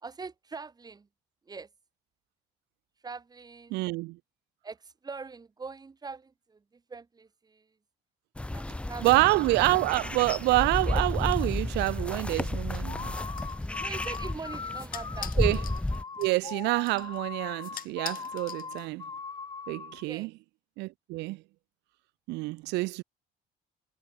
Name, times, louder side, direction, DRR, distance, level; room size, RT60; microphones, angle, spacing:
voice 1, 0.0-1.1 1.5-1.7 3.0-3.8 4.6-7.7 8.5-9.1 13.8-15.3 20.0-20.3, right 4 dB, 25° right, 1.9 m, -43 dB
voice 2, 3.7-4.2 9.0-13.1 15.4-15.6 16.2-19.0 19.7-20.3 20.8-21.4 22.3-23.0, right 22 dB, 85° right, 0.5 m, -27 dB
sound 1, 8.4-16.0, left 1 dB, 5° left, 0.6 m, -32 dB
sound 2, 12.7-19.2, left 11 dB, 55° left, 2.3 m, -46 dB
sound 3, 12.8-20.0, left 5 dB, 25° left, 1.7 m, -40 dB
cardioid pair, 110°, 17 cm